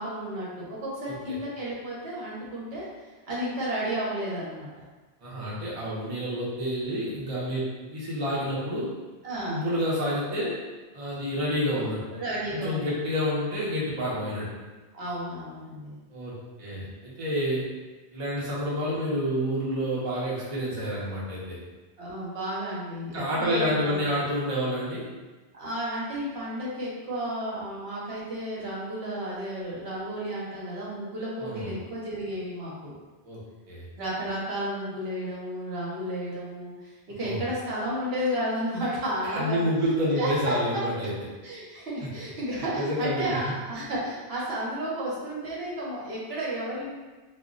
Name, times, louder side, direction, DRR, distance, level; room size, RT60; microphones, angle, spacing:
voice 1, 0.0-4.7 9.2-9.7 12.1-13.0 14.9-16.0 22.0-24.1 25.5-32.9 34.0-39.6 40.2-40.6 41.4-46.9, right 1 dB, 65° right, -6 dB, 0.9 m, -32 dB
voice 2, 1.1-1.4 5.2-8.9 9.4-10.6 10.9-12.2 12.5-14.5 16.1-17.6 18.1-21.6 23.1-25.1 31.4-31.8 33.2-33.8 37.2-37.4 39.2-41.1 42.6-43.4, equal, 35° right, -7 dB, 0.6 m, -29 dB
2.1 x 2.1 x 3.7 m, 1.2 s
omnidirectional pair, 1.1 m